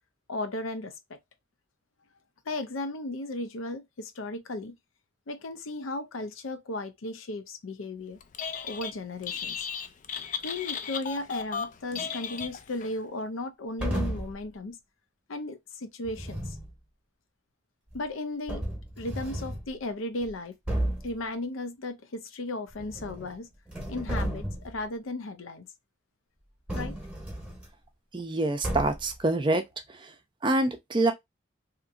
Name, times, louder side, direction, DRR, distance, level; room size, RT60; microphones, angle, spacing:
voice 1, 0.3-1.2 2.5-4.8 5.3-8.2 8.6-9.6 10.4-14.8 15.3-16.6 17.9-18.6 19.0-20.6 21.0-23.5 23.9-25.7 26.7-27.0, left 2 dB, 85° left, 0.6 m, -35 dB
Telephone, 8.2-8.9 9.2-12.9, left 6 dB, 40° left, 0.3 m, -35 dB
sound 1, 13.8-14.4 16.1-16.7 17.9-18.0 18.5-19.7 20.2-20.3 20.7-21.1 22.7-23.4 23.7-24.8 26.7-27.7 28.6-29.2, right 1 dB, 5° right, 0.9 m, -33 dB
voice 2, 28.1-29.6 30.4-31.1, right 2 dB, 25° right, 0.5 m, -25 dB
2.9 x 2.6 x 2.4 m
head